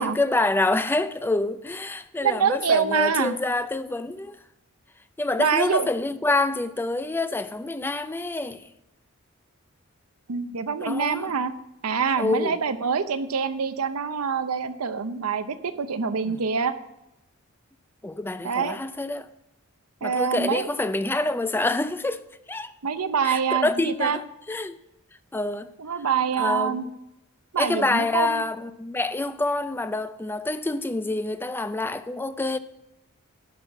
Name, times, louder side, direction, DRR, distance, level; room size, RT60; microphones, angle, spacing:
voice 1, 0.0-4.4 5.2-8.6 10.8-11.3 12.2-12.6 16.3-16.4 18.0-19.3 20.0-22.2 22.5-22.7 23.2-24.2 24.5-24.8 25.3-25.7 26.4-26.8 27.6-32.6, left 2 dB, 10° left, 0.3 m, -27 dB
voice 2, 2.2-3.4 5.4-5.9 10.3-11.5 11.8-16.8 18.4-18.8 20.0-20.7 22.8-24.2 25.8-26.8 27.5-28.4, right 6 dB, 90° right, 0.7 m, -25 dB
11.0 x 5.7 x 5.9 m
head